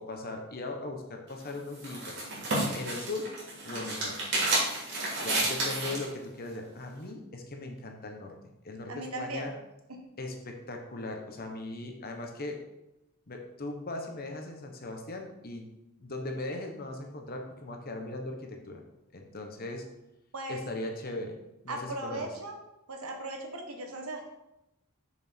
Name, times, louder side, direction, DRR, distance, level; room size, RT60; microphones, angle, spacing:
voice 1, 0.0-2.2 2.7-3.3 3.6-4.3 5.2-8.4 8.6-9.5 10.2-12.6 13.3-15.7 16.0-18.8 19.1-19.9 20.5-21.4 21.6-22.3, left 2 dB, 45° left, 3 dB, 1.1 m, -39 dB
sound 1, 1.3-6.1, right 2 dB, 50° right, 2.9 m, -31 dB
voice 2, 8.9-9.5 9.9-10.0 20.3-20.6 21.7-22.6 22.9-24.3, right 2 dB, 80° right, 3 dB, 1.4 m, -38 dB
6.7 x 6.2 x 4.5 m, 0.90 s
head